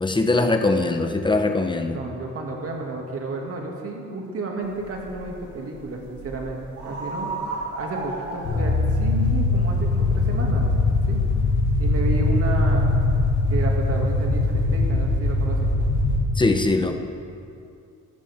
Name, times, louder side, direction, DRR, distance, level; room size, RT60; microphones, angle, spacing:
voice 1, 0.0-2.0 16.4-17.0, left 2 dB, 15° left, 6 dB, 1.0 m, -21 dB
voice 2, 1.9-7.3 7.8-10.7 11.1-11.2 11.8-12.9 13.5-15.7, right 2 dB, 50° right, 0 dB, 2.4 m, -32 dB
sound 1, 4.6-14.9, right 2 dB, 75° right, 2.3 m, -35 dB
sound 2, 8.4-16.2, left 2 dB, 70° left, 2.5 m, -21 dB
13.5 x 13.0 x 3.7 m, 2.5 s
cardioid pair, 90°, 30 cm